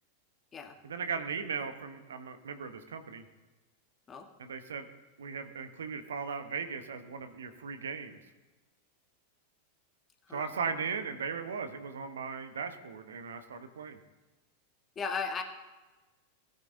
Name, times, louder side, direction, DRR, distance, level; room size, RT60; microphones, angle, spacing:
voice 1, 0.8-3.2 4.4-4.9 5.2-8.2 10.3-14.0, right 6 dB, 65° right, 9 dB, 0.9 m, -37 dB
voice 2, 14.9-15.4, left 5 dB, 20° left, 4 dB, 1.5 m, -36 dB
18.5 x 9.1 x 2.7 m, 1.2 s
figure-of-eight pair, 90°, 0 cm